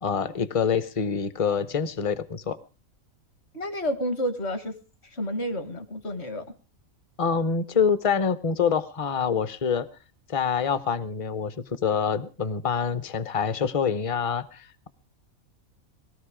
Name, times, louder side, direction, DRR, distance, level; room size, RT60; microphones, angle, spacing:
voice 1, 0.0-2.6 7.2-9.9 10.3-14.9, left 6 dB, 30° left, 14 dB, 0.8 m, -26 dB
voice 2, 3.5-4.8 5.0-6.5, equal, 50° left, 10 dB, 1.9 m, -30 dB
20.5 x 13.5 x 5.0 m, 0.37 s
omnidirectional pair, 1.5 m